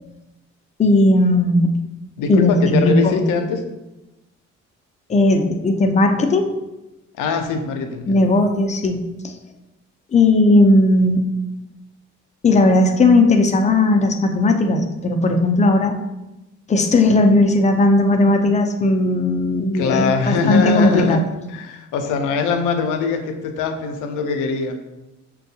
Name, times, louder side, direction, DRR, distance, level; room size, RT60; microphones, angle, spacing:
voice 1, 0.8-1.7 2.3-3.3 5.1-6.5 8.1-9.3 10.1-11.3 12.4-16.0 16.7-21.2, left 2 dB, 25° left, 5 dB, 0.4 m, -16 dB
voice 2, 2.2-3.6 7.1-8.2 19.7-21.2 21.5-24.8, left 5 dB, 90° left, 5 dB, 0.6 m, -22 dB
5.8 x 2.3 x 2.7 m, 0.98 s
cardioid pair, 90°, 30 cm